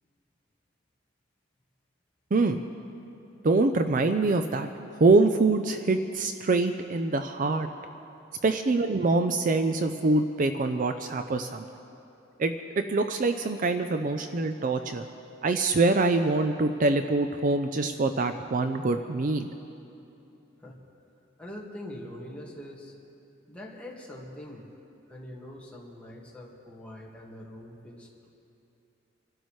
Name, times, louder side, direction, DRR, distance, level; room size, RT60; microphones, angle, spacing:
voice 1, 3.4-4.7 5.0-7.7 8.4-11.7 12.4-15.1 15.4-19.5, right 3 dB, 45° right, 7 dB, 0.5 m, -24 dB
voice 2, 21.4-22.9 23.5-24.7 25.1-28.3, left 1 dB, 5° left, -3 dB, 1.8 m, -43 dB
26.0 x 12.5 x 3.2 m, 2.8 s
head